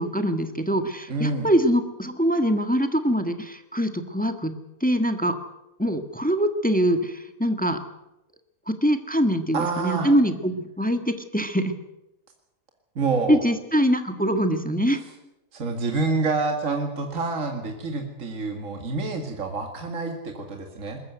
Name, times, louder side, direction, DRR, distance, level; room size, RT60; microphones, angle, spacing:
voice 1, 0.0-4.5 4.8-5.4 5.8-7.8 8.7-11.7 13.3-15.0, equal, 5° left, 8 dB, 1.4 m, -23 dB
voice 2, 1.1-1.5 9.5-10.1 13.0-13.4 15.5-21.0, right 3 dB, 60° right, 3 dB, 2.4 m, -27 dB
21.0 x 14.5 x 9.3 m, 0.92 s
omnidirectional pair, 1.5 m